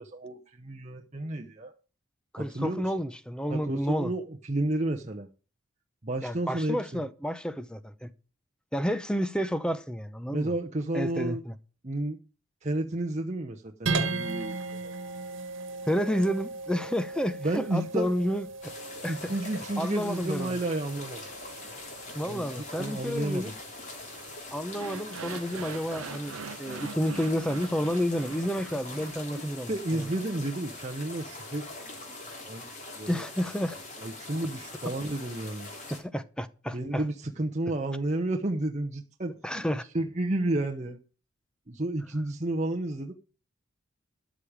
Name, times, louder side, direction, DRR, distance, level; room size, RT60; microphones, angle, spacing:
voice 1, 0.0-1.7 2.4-2.9 3.5-5.3 6.0-7.0 10.3-11.4 11.8-12.2 12.6-14.9 17.4-18.1 19.1-21.2 22.3-22.5 22.8-23.6 29.7-32.2 32.5-32.7 33.0-33.2 34.0-35.7 36.7-39.6 39.9-41.0 41.7-43.1, right 1 dB, 35° right, 0.9 m, -31 dB
voice 2, 2.3-4.1 6.2-8.1 8.7-10.5 10.9-11.5 15.9-18.5 19.0-19.3 19.8-20.5 22.1-23.5 24.5-30.1 33.1-33.8 35.9-37.0 39.4-39.8, equal, 5° left, 0.7 m, -30 dB
sound 1, 13.9-24.4, right 3 dB, 65° right, 1.7 m, -37 dB
sound 2, 18.6-36.0, left 2 dB, 35° left, 3.2 m, -43 dB
sound 3, 24.6-29.8, right 5 dB, 90° right, 0.6 m, -43 dB
13.0 x 5.1 x 8.7 m
head